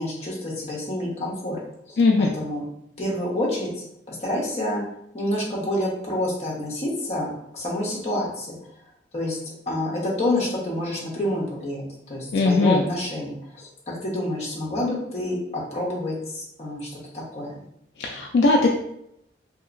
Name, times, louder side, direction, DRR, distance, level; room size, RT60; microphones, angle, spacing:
voice 1, 0.0-1.6 1.9-2.6 3.0-3.7 4.1-4.8 5.1-8.6 9.1-9.4 9.7-16.9 17.1-17.6, left 1 dB, 35° left, -3 dB, 0.9 m, -28 dB
voice 2, 2.0-2.3 12.3-12.8 18.0-18.7, left 3 dB, 65° left, 1 dB, 0.3 m, -19 dB
2.8 x 2.8 x 2.5 m, 0.76 s
head